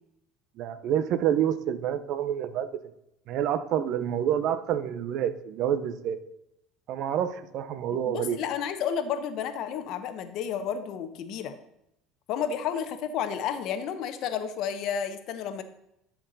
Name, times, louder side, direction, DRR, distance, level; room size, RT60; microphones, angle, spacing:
voice 1, 0.6-2.7 3.3-6.2 6.9-8.4, right 10 dB, 60° right, 13 dB, 0.6 m, -28 dB
voice 2, 7.9-11.5 12.3-15.6, left 8 dB, 60° left, 9 dB, 0.9 m, -31 dB
11.5 x 4.6 x 4.0 m, 0.81 s
supercardioid pair, 100°, 0 cm